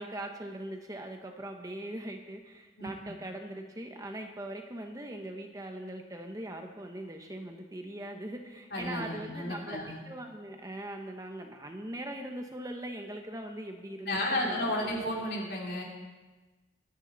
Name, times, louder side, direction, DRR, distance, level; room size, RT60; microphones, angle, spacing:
voice 1, 0.0-9.8 10.1-14.8, right 1 dB, 20° right, 4 dB, 1.0 m, -41 dB
voice 2, 2.8-3.1 8.7-10.0 14.1-15.8, left 1 dB, 60° left, -2 dB, 3.3 m, -33 dB
22.5 x 9.9 x 4.1 m, 1.2 s
head